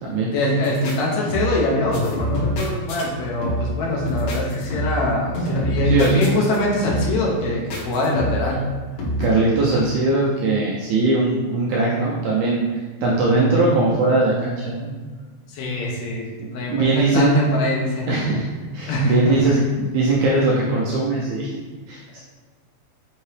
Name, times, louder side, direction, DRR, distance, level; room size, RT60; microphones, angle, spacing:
voice 1, 0.3-8.6 15.5-18.1 18.9-19.5, left 1 dB, 85° left, -3 dB, 1.5 m, -23 dB
sound 1, 0.6-1.0 1.3-1.7 1.9-3.0 3.4-3.8 4.1-5.1 5.3-6.6 6.8-7.2 7.7-8.5 9.0-9.3, equal, 65° left, 2.2 m, -25 dB
voice 2, 5.8-6.2 9.2-12.7 13.0-14.9 16.7-17.3 18.1-18.5 18.7-21.6 21.9-22.2, right 2 dB, 90° right, -5 dB, 1.7 m, -20 dB
5.6 x 2.8 x 3.2 m, 1.5 s
omnidirectional pair, 4.1 m